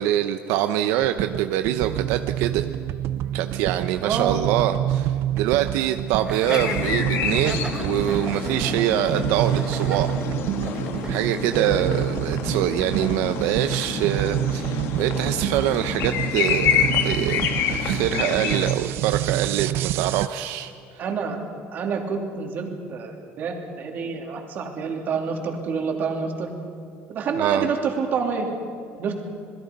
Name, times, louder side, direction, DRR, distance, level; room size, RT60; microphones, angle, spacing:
voice 1, 0.0-2.7 3.3-10.2 10.6-10.7 11.1-20.7 27.4-27.7, right 12 dB, 85° right, 9 dB, 0.8 m, -25 dB
sound 1, 1.0-20.3, right 13 dB, 60° right, 0.5 m, -28 dB
voice 2, 4.0-4.4 11.5-11.9 21.0-21.4 21.7-26.5 27.1-28.5 29.0-29.2, right 5 dB, 45° right, 2 dB, 3.1 m, -27 dB
Laughter, 6.3-11.2, right 3 dB, 15° right, 1.6 m, -36 dB
sound 2, 6.5-18.7, left 8 dB, 60° left, 1.8 m, -28 dB
27.0 x 21.5 x 5.4 m, 2.5 s
cardioid pair, 160°, 5 cm